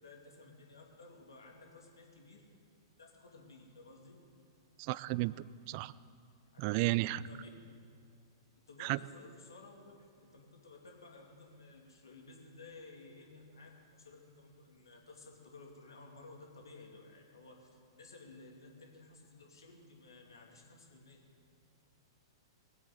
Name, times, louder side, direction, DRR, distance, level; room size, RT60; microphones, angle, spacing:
voice 1, 0.0-2.5 3.0-4.2 6.5-7.5 8.7-17.7 18.0-21.2, left 3 dB, 75° left, 0 dB, 2.7 m, -55 dB
voice 2, 4.8-5.3 5.7-5.9 6.6-7.2 8.8-9.0, right 20 dB, 45° right, 19 dB, 0.4 m, -32 dB
20.0 x 8.2 x 7.9 m, 2.2 s
figure-of-eight pair, 105°, 2 cm